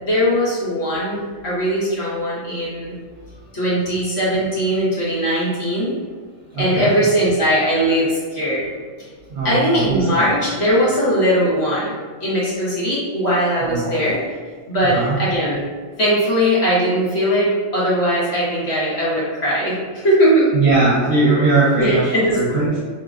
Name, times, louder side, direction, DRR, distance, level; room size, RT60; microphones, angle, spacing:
voice 1, 0.0-2.9 3.5-5.9 6.6-8.7 9.4-14.2 14.7-15.6 16.0-20.5 21.7-22.4, equal, 50° left, -8 dB, 1.5 m, -19 dB
voice 2, 6.5-6.9 9.3-10.3 13.6-14.0 14.8-15.2 20.5-22.7, right 2 dB, 55° right, -7 dB, 1.0 m, -19 dB
4.8 x 2.8 x 2.4 m, 1.5 s
omnidirectional pair, 1.5 m